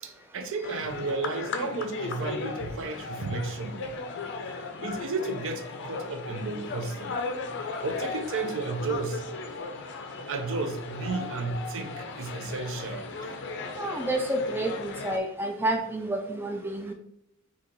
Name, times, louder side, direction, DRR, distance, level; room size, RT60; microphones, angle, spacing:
voice 1, 0.0-3.9 4.4-7.2 7.8-9.2 10.3-13.3, right 3 dB, 65° right, 7 dB, 0.5 m, -33 dB
sound 1, 0.6-15.2, left 3 dB, 55° left, 0.5 m, -37 dB
voice 2, 13.8-16.9, right 1 dB, 10° right, 3 dB, 0.3 m, -29 dB
4.9 x 2.7 x 3.1 m, 0.75 s
head